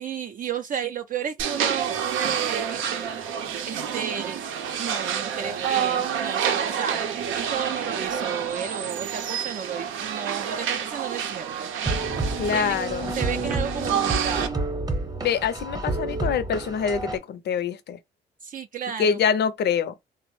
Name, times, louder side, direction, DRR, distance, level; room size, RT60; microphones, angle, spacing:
voice 1, 0.0-3.1 3.7-4.4 4.8-11.7 12.5-12.8 13.2-14.6 18.4-19.2, right 8 dB, 45° right, 0.4 m, -33 dB
sound 1, 1.4-14.5, right 8 dB, 85° right, 0.6 m, -28 dB
sound 2, 11.9-17.2, right 2 dB, 20° right, 0.7 m, -29 dB
voice 2, 12.4-13.1 15.2-18.0 19.0-19.9, left 7 dB, 60° left, 0.5 m, -25 dB
3.3 x 2.0 x 3.1 m
cardioid pair, 90°, 20 cm